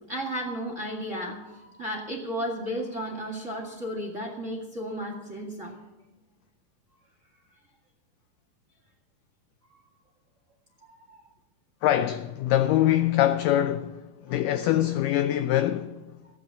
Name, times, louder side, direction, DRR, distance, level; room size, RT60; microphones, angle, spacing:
voice 1, 0.1-5.8 9.7-9.8 10.9-11.2, equal, 25° right, 1.7 m, -34 dB
voice 2, 11.8-16.0, left 12 dB, 85° left, 1.9 m, -24 dB
15.0 x 9.7 x 8.1 m
omnidirectional pair, 4.4 m